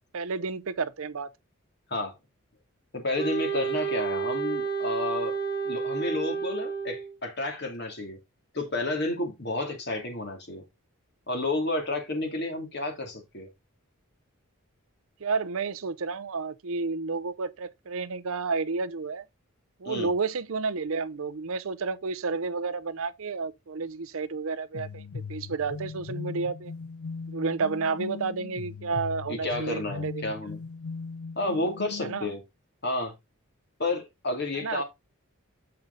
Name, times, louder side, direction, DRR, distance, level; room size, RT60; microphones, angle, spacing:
voice 1, 0.1-1.3 15.2-19.2 19.8-25.0 25.3-26.7 27.3-30.2 32.0-32.3 34.6-34.8, right 4 dB, 70° right, 0.6 m, -31 dB
voice 2, 2.9-5.4 5.6-8.2 8.5-10.6 11.3-13.5 19.8-20.1 29.3-30.6 31.4-32.4 32.8-33.1 33.8-34.8, left 2 dB, 50° left, 2.6 m, -31 dB
Wind instrument woodwind instrument, 3.2-7.2, right 6 dB, 20° left, 1.5 m, -30 dB
sound 1, 24.7-32.4, left 5 dB, 75° left, 0.5 m, -39 dB
7.7 x 5.5 x 3.8 m
head